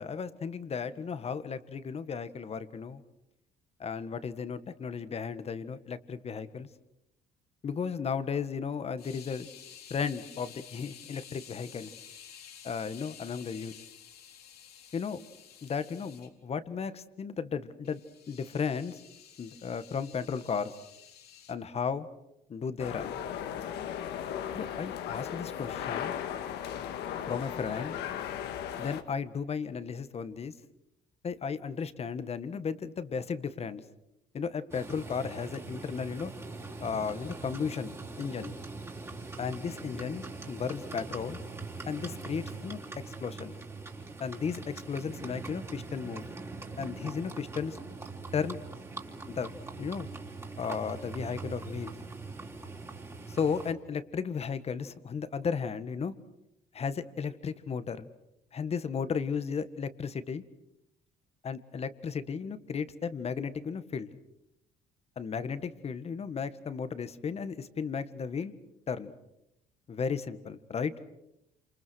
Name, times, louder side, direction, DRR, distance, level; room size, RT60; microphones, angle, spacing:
voice 1, 0.0-3.0 3.8-6.7 7.6-9.5 9.9-11.9 12.6-13.7 14.9-15.2 15.6-18.0 18.3-19.0 19.4-20.7 21.5-22.1 22.5-23.1 24.5-26.2 27.3-28.0 28.8-30.5 31.2-33.8 34.3-36.3 36.8-38.5 39.4-41.4 41.9-42.8 43.2-43.5 44.2-46.3 46.8-47.8 48.3-48.6 49.3-49.5 49.8-50.1 50.6-51.9 53.3-56.1 56.7-58.1 58.5-60.4 61.4-64.1 65.2-68.5 68.9-69.1 69.9-70.9, left 6 dB, 40° left, 13 dB, 1.7 m, -34 dB
sound 1, 9.0-16.3 17.8-21.5, left 8 dB, 65° left, 3.5 m, -51 dB
sound 2, 22.8-29.0, left 9 dB, 85° left, 2.0 m, -36 dB
Livestock farm animals working animals, 34.7-53.7, right 3 dB, 15° right, 3.6 m, -42 dB
28.5 x 27.0 x 6.4 m, 0.86 s
cardioid pair, 110°, 17 cm